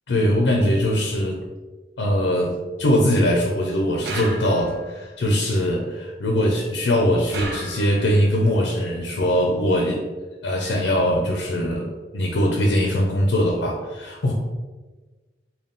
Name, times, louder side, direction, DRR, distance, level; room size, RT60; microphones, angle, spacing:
voice 1, 0.1-1.4 2.0-10.0 10.4-14.3, equal, 85° left, 0 dB, 0.5 m, -21 dB
sound 1, 4.0-4.9 7.3-8.2, right 2 dB, 65° right, 0.6 m, -33 dB
3.6 x 2.2 x 3.8 m, 1.3 s
head